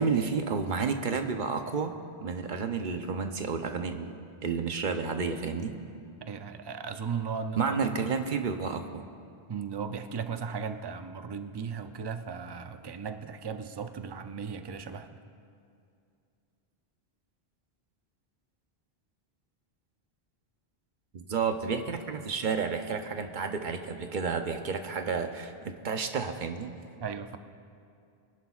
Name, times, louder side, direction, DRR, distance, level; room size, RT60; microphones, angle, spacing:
voice 1, 0.0-1.9 2.2-5.7 7.6-9.0 21.1-26.7, right 5 dB, 55° right, 6 dB, 0.8 m, -31 dB
voice 2, 6.2-7.8 9.5-15.1 27.0-27.4, right 6 dB, 40° right, 8 dB, 0.4 m, -36 dB
22.5 x 11.0 x 2.4 m, 2.4 s
omnidirectional pair, 1.1 m